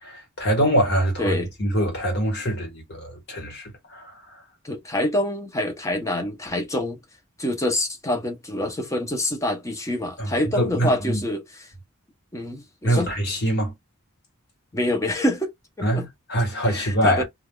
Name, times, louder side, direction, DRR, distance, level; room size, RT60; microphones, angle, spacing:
voice 1, 0.0-4.1 10.2-10.3 10.5-11.2 12.8-13.7 15.8-17.2, right 1 dB, 50° left, 1.3 m, -24 dB
voice 2, 1.2-1.5 4.6-7.0 7.4-11.7 12.3-13.1 14.7-15.5 15.8-16.0 16.7-17.2, left 1 dB, 15° left, 0.7 m, -26 dB
3.4 x 2.4 x 2.2 m
head